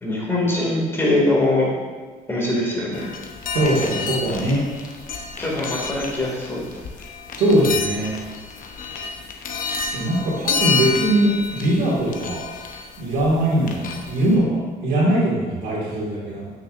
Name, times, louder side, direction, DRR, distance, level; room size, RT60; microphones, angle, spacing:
voice 1, 0.0-1.7 2.3-3.1 5.4-6.6, left 1 dB, 15° left, -4 dB, 2.3 m, -22 dB
sound 1, 2.9-14.4, left 5 dB, 55° left, 0.9 m, -30 dB
voice 2, 3.5-4.7 7.4-8.1 9.9-12.4 13.0-16.5, right 1 dB, 75° right, -5 dB, 2.1 m, -21 dB
9.5 x 6.0 x 2.6 m, 1.4 s
cardioid pair, 110°, 17 cm